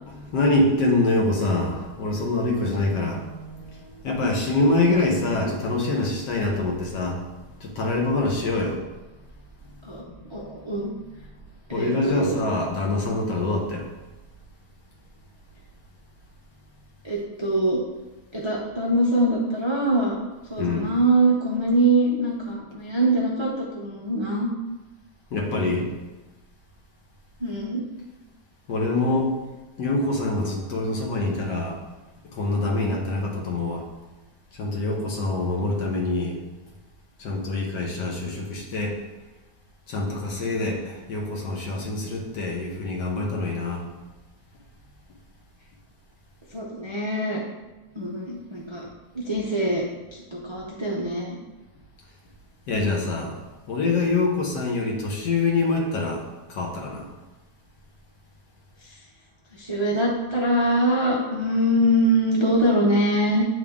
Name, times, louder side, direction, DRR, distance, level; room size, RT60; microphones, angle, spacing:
voice 1, 0.1-7.2 7.6-8.8 9.9-10.0 11.7-13.9 20.6-20.9 25.3-25.9 28.7-29.3 29.8-31.8 32.2-33.9 34.5-36.4 37.2-39.0 39.9-43.9 52.7-53.4 53.7-56.2 56.5-57.1, left 2 dB, 75° left, 0 dB, 1.7 m, -25 dB
voice 2, 9.8-10.9 11.7-12.4 17.0-17.8 18.3-20.2 20.5-24.5 27.4-27.8 46.5-47.4 47.9-48.8 49.1-49.8 50.1-51.4 58.8-59.0 59.5-63.5, right 1 dB, 50° right, -4 dB, 0.3 m, -23 dB
8.1 x 3.7 x 3.5 m, 1.1 s
omnidirectional pair, 1.9 m